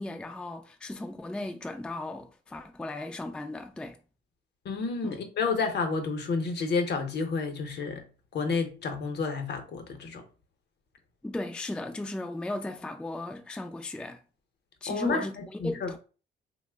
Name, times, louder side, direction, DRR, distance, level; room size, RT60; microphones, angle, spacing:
voice 1, 0.0-4.0 5.0-5.2 11.2-14.2 14.8-16.0, left 2 dB, 5° left, 0.3 m, -36 dB
voice 2, 4.6-8.1 8.3-10.2 14.9-16.0, left 4 dB, 60° left, 0.7 m, -30 dB
2.9 x 2.0 x 3.4 m
cardioid pair, 90°, 20 cm